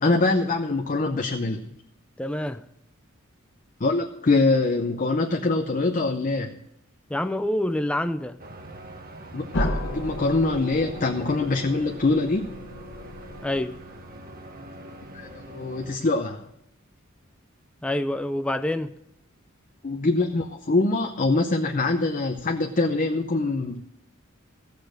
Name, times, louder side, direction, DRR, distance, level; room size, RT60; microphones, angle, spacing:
voice 1, 0.0-1.7 3.8-6.5 9.3-12.5 15.1-16.4 19.8-23.8, left 3 dB, 40° left, 0.7 m, -24 dB
voice 2, 2.2-2.6 7.1-8.4 13.4-13.8 17.8-18.9, left 1 dB, 5° left, 0.3 m, -27 dB
sound 1, 8.4-16.0, right 2 dB, 45° right, 1.1 m, -42 dB
sound 2, 9.5-14.3, left 1 dB, 65° left, 1.3 m, -33 dB
15.0 x 6.7 x 6.4 m
head